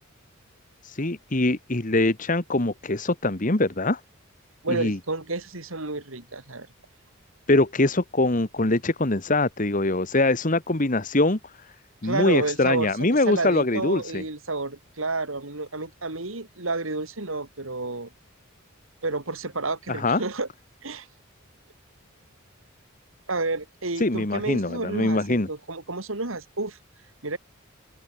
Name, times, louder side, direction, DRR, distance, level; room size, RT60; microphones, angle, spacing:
voice 1, 0.8-4.0 4.7-5.0 7.5-11.4 12.0-14.2 19.9-20.2 24.0-25.5, left 2 dB, 40° left, 1.5 m, -23 dB
voice 2, 4.6-6.7 12.0-18.1 19.0-20.5 20.8-21.1 23.3-26.8 27.2-27.4, right 3 dB, 70° right, 2.9 m, -30 dB
open air
head